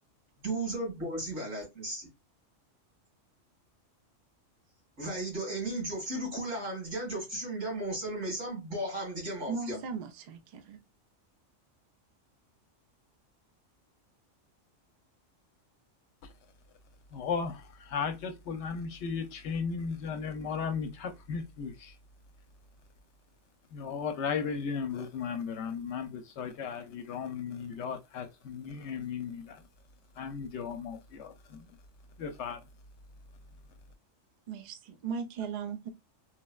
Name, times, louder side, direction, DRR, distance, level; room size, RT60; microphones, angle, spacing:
voice 1, 0.4-2.1 5.0-9.8, right 1 dB, 85° right, 2.4 m, -35 dB
voice 2, 9.5-10.8 34.5-35.9, right 6 dB, 70° right, 0.4 m, -37 dB
voice 3, 17.1-22.0 23.7-29.6 30.2-31.8 32.2-32.6, left 6 dB, 70° left, 0.8 m, -36 dB
3.9 x 2.1 x 2.2 m
omnidirectional pair, 1.3 m